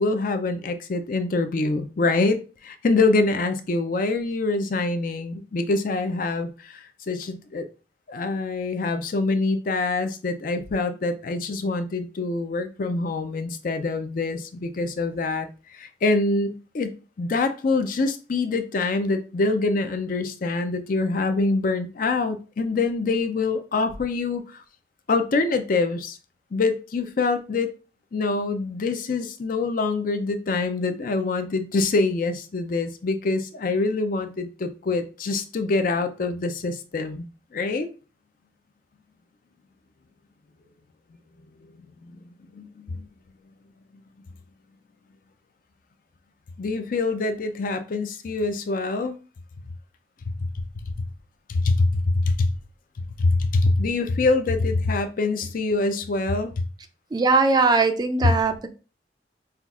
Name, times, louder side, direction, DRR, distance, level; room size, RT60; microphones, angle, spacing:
voice 1, 0.0-7.6 8.1-24.6 25.1-26.2 26.5-27.8 28.1-37.9 41.6-42.2 42.5-43.0 46.6-49.2 50.9-51.0 51.5-52.5 53.2-56.6, left 3 dB, 50° left, 0.4 m, -25 dB
voice 2, 57.1-58.5, right 3 dB, 25° right, 0.3 m, -20 dB
5.6 x 2.3 x 2.4 m
head